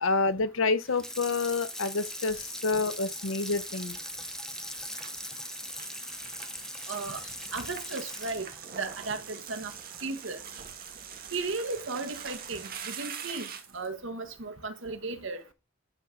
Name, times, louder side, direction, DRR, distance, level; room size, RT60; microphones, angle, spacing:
voice 1, 0.0-4.0, left 3 dB, 80° left, 0.8 m, -28 dB
Water tap faucet / Sink (filling or washing), 0.8-10.0 10.4-10.5, left 1 dB, 5° left, 0.7 m, -40 dB
sound 1, 0.9-13.9, right 7 dB, 50° right, 1.5 m, -45 dB
voice 2, 6.9-7.2 7.5-8.5 8.7-9.7 10.0-10.4 11.3-13.5 13.7-15.4, right 3 dB, 70° right, 1.4 m, -35 dB
11.0 x 3.8 x 5.8 m
head